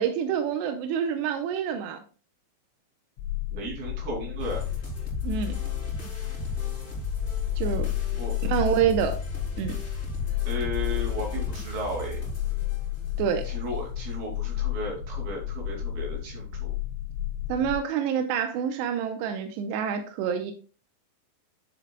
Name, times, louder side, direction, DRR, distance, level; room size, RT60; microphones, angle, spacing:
voice 1, 0.0-2.0 5.2-5.6 7.6-7.9 8.4-9.2 9.6-9.7 13.2-13.5 17.5-20.5, right 8 dB, 80° right, 6 dB, 2.6 m, -27 dB
sound 1, 3.2-17.8, left 14 dB, 85° left, 2.5 m, -32 dB
voice 2, 3.5-4.6 8.1-8.3 10.5-12.2 13.4-16.7, equal, 55° right, -1 dB, 4.5 m, -35 dB
sound 2, 4.4-13.5, left 1 dB, 15° left, 3.1 m, -36 dB
10.0 x 7.1 x 2.3 m, 0.36 s
omnidirectional pair, 5.5 m